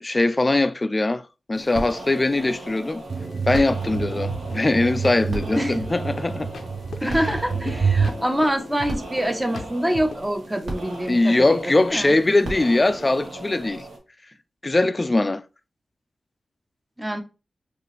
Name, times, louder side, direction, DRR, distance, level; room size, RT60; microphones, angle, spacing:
voice 1, 0.0-3.0 3.5-6.5 7.0-7.2 11.1-13.8 14.6-15.4, left 2 dB, 30° left, 0.3 m, -21 dB
sound 1, 1.5-14.0, right 2 dB, 75° right, 1.3 m, -36 dB
sound 2, 3.1-8.1, right 5 dB, 50° right, 0.3 m, -27 dB
sound 3, 3.2-10.2, left 4 dB, 85° left, 0.5 m, -40 dB
voice 2, 5.5-5.9 7.0-12.1 17.0-17.2, equal, 15° right, 0.6 m, -25 dB
5.3 x 2.5 x 3.0 m
wide cardioid pair, 75°, 0 cm